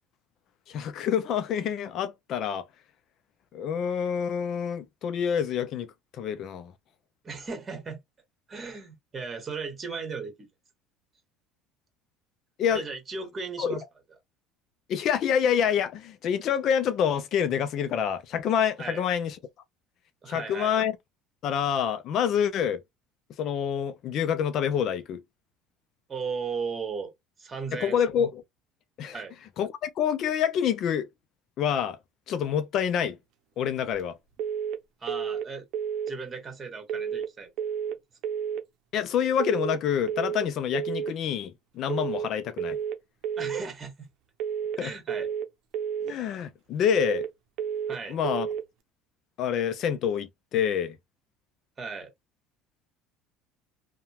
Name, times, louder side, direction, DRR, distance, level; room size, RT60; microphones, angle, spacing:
voice 1, 0.7-2.7 3.5-6.7 12.6-12.8 13.6-13.8 14.9-19.4 20.3-20.9 21.4-22.8 23.4-25.2 27.7-28.4 29.0-29.2 29.6-31.1 31.6-32.0 32.3-33.2 33.6-34.2 38.9-42.8 44.8-44.9 46.1-47.3 48.1-48.5 49.4-51.0, left 8 dB, 55° left, 0.5 m, -27 dB
voice 2, 7.2-8.0 8.5-10.3 12.7-13.8 18.8-19.0 20.2-20.8 26.1-27.1 27.4-28.0 29.1-29.3 35.0-35.7 36.1-37.5 43.4-44.1 44.8-45.3 47.9-48.2 51.8-52.1, right 5 dB, 25° right, 1.5 m, -36 dB
sound 1, 34.4-34.8 35.1-35.5 35.7-36.1 36.9-37.3 37.6-38.0 38.2-38.6 39.4-39.8 40.1-40.5 40.7-41.1 41.9-42.3 42.6-43.0 43.2-43.6 44.4-44.8 45.1-45.5 45.7-46.1 46.9-47.3 47.6-48.0 48.2-48.6, right 8 dB, 60° right, 0.7 m, -31 dB
2.8 x 2.2 x 2.8 m
supercardioid pair, 110°, 0 cm